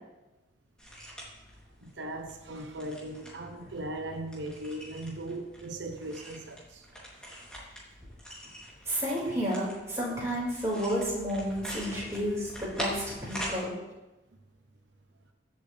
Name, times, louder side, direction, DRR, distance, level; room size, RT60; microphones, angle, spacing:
sound 1, 0.8-13.6, equal, 5° left, 3.1 m, -44 dB
voice 1, 1.8-6.9, right 1 dB, 80° right, 1.0 m, -38 dB
voice 2, 8.9-13.7, equal, 15° right, 5.2 m, -31 dB
22.0 x 7.9 x 3.5 m
head